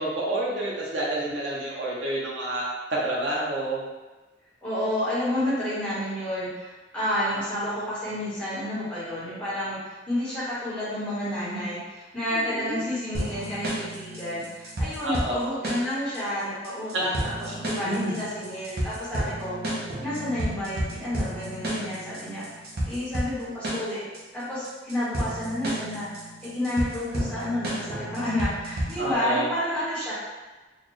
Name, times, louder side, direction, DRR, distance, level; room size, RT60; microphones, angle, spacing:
voice 1, 0.0-2.6 2.9-3.8 12.3-12.8 15.0-15.4 16.9-17.6 17.9-18.1 29.0-29.5, right 1 dB, 90° right, -5 dB, 0.9 m, -29 dB
voice 2, 4.6-24.0 24.3-30.1, left 1 dB, 5° left, -12 dB, 1.4 m, -30 dB
sound 1, 13.1-29.1, right 1 dB, 60° right, 0.9 m, -32 dB
4.1 x 2.5 x 3.2 m, 1.2 s
head